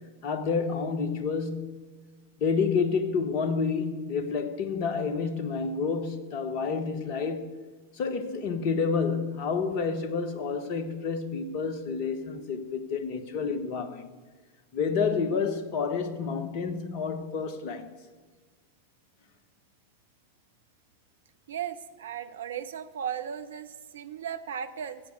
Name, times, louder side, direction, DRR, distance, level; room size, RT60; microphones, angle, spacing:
voice 1, 0.2-1.8 2.4-7.5 7.9-14.1 14.7-17.9, left 5 dB, 45° left, 1.3 m, -29 dB
voice 2, 21.5-25.0, right 8 dB, 65° right, 0.8 m, -36 dB
14.0 x 8.5 x 8.0 m
figure-of-eight pair, 90°, 0 cm